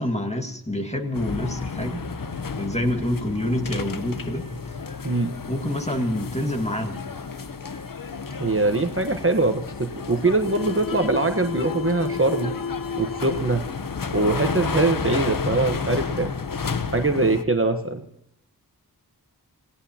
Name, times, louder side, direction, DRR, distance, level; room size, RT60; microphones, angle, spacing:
voice 1, 0.0-2.0 2.6-4.5 5.5-7.0, left 1 dB, 15° left, 4 dB, 1.9 m, -27 dB
sound 1, 1.1-17.4, left 5 dB, 60° left, 0.9 m, -31 dB
voice 2, 5.0-5.4 8.4-12.6 13.0-13.6 14.1-16.3 16.9-18.0, right 2 dB, 35° right, 6 dB, 1.2 m, -22 dB
27.0 x 17.5 x 2.9 m, 0.75 s
wide cardioid pair, 60°, 38 cm